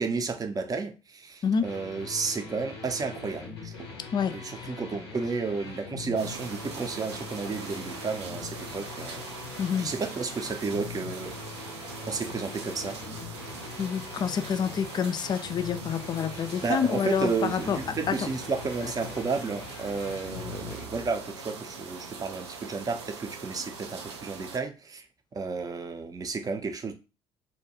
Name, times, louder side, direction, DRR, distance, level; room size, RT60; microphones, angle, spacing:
voice 1, 0.0-4.0 4.3-11.4 12.1-13.0 16.3-25.1 25.3-26.9, right 4 dB, 25° right, 0.5 m, -32 dB
sound 1, 1.6-20.8, left 5 dB, 80° left, 0.6 m, -42 dB
voice 2, 4.1-4.7 9.6-9.9 13.8-17.8 18.1-18.3, left 7 dB, 30° left, 0.3 m, -28 dB
sound 2, 6.2-24.6, right 4 dB, 85° right, 0.4 m, -42 dB
2.6 x 2.2 x 2.8 m
figure-of-eight pair, 50°, 14 cm